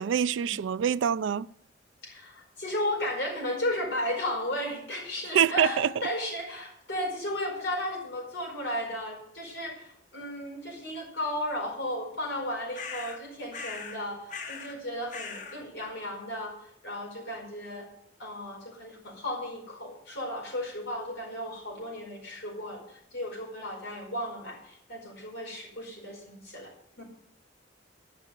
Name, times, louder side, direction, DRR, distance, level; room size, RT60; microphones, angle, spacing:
voice 1, 0.0-1.5 5.3-5.9, right 8 dB, 90° right, 0.4 m, -25 dB
voice 2, 2.0-17.9 18.2-26.7 27.0-27.1, left 1 dB, 70° left, 4.8 m, -34 dB
sound 1, 12.7-13.2 13.5-14.0 14.3-14.8 15.1-15.6, left 5 dB, 45° left, 1.3 m, -39 dB
11.0 x 6.1 x 8.8 m
head